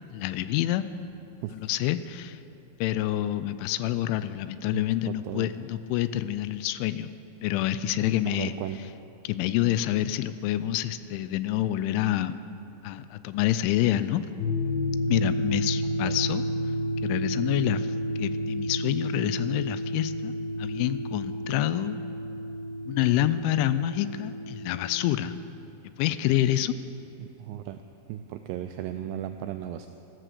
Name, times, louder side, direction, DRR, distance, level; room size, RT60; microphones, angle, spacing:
voice 1, 0.1-0.9 1.5-2.4 2.8-7.1 7.4-8.5 9.2-12.4 12.8-14.3 15.1-16.5 17.0-17.9 18.2-20.3 20.6-22.0 22.9-25.4 26.0-26.8, left 13 dB, 85° left, 14 dB, 3.0 m, -27 dB
voice 2, 4.7-5.5 8.3-8.8 16.0-16.2 27.2-27.8 28.1-29.9, right 11 dB, 90° right, 7 dB, 2.4 m, -36 dB
sound 1, 14.4-25.2, equal, 65° left, 6.2 m, -31 dB
14.5 x 13.5 x 6.6 m, 3.0 s
omnidirectional pair, 5.5 m